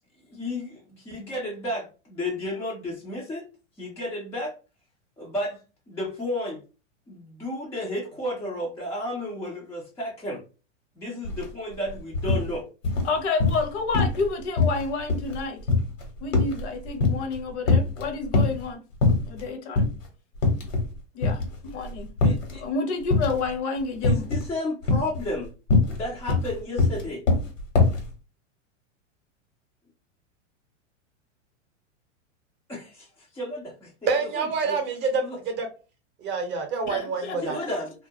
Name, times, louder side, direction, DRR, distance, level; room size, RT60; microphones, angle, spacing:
voice 1, 0.3-3.5 3.8-4.5 5.2-5.6 5.9-6.6 7.1-10.4 11.0-12.6 22.2-22.6 24.0-25.5 25.9-27.2 32.7-33.9 34.6-34.8 35.2-35.4 37.4-37.9, left 1 dB, 10° left, 0.3 m, -32 dB
sound 1, 11.2-11.4 11.7-12.5 12.8-13.7 13.9-14.3 14.6-17.4 17.6-18.6 19.0-19.4 19.8-19.9 20.4-20.9 21.2-22.6 23.1-23.5 24.0-24.5 24.8-28.1, left 3 dB, 80° left, 1.1 m, -22 dB
voice 2, 13.0-15.6 16.2-18.8 19.2-19.9 21.1-22.1 22.5-24.3 36.9-37.7, left 4 dB, 60° left, 0.7 m, -30 dB
voice 3, 34.1-35.7 36.2-37.6, right 4 dB, 30° right, 0.6 m, -27 dB
2.3 x 2.0 x 2.7 m
hypercardioid pair, 115°, 38 cm